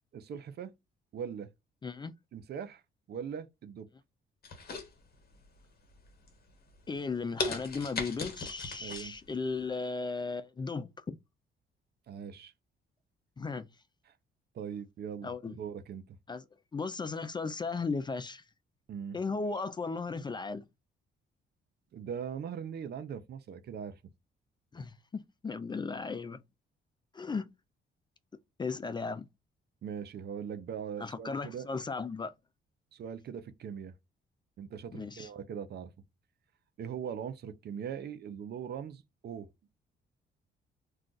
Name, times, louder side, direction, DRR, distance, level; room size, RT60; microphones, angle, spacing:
voice 1, 0.1-0.7 1.1-1.5 2.3-2.8 3.1-3.9 8.8-9.1 12.1-12.5 14.5-16.2 18.9-19.5 21.9-24.0 29.8-31.7 32.9-33.9 34.6-35.9 36.8-39.5, right 8 dB, 55° right, 0.5 m, -40 dB
voice 2, 1.8-2.1 6.9-11.2 13.4-13.7 15.2-15.6 16.3-16.4 16.7-18.4 19.1-20.7 24.7-26.4 27.1-27.5 28.6-29.3 31.0-32.3 34.9-35.3, left 4 dB, 20° left, 0.3 m, -36 dB
sound 1, 4.4-5.5 5.9-6.3 6.8-6.9 7.4-9.1 9.5-9.6, left 4 dB, 50° left, 1.1 m, -37 dB
2.4 x 2.3 x 3.8 m
cardioid pair, 90°, 20 cm